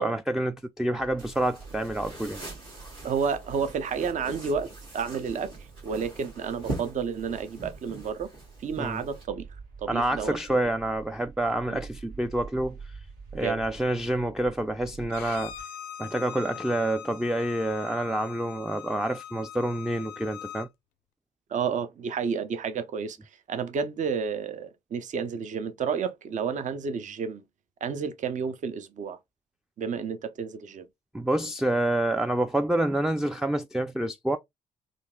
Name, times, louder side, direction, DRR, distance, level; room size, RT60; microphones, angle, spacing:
voice 1, 0.0-2.4 8.8-9.0 9.9-12.8 13.3-15.5 16.0-20.7 31.1-34.4, right 1 dB, 5° right, 0.3 m, -28 dB
sound 1, 1.0-15.6, right 5 dB, 70° right, 1.1 m, -47 dB
sound 2, 1.2-9.2, right 2 dB, 90° right, 1.5 m, -42 dB
voice 2, 3.0-5.5 5.8-8.3 8.6-9.4 9.8-10.4 11.7-11.8 13.4-13.6 21.5-23.2 23.5-27.4 27.8-29.2 29.8-30.9, right 6 dB, 50° right, 0.6 m, -31 dB
Bowed string instrument, 15.1-20.7, left 10 dB, 75° left, 0.4 m, -42 dB
3.8 x 2.4 x 2.2 m
hypercardioid pair, 45°, 16 cm